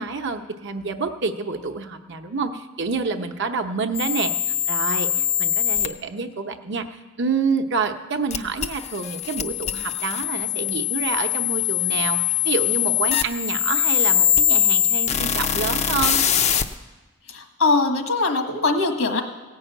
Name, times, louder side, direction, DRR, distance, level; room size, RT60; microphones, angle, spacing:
voice 1, 0.0-16.2, right 4 dB, 55° right, 6 dB, 0.8 m, -28 dB
sound 1, 3.9-5.9 8.3-16.6, left 9 dB, 30° left, 0.5 m, -22 dB
voice 2, 17.3-19.2, left 3 dB, 75° left, 5 dB, 1.5 m, -21 dB
16.0 x 5.6 x 9.0 m, 1.3 s
head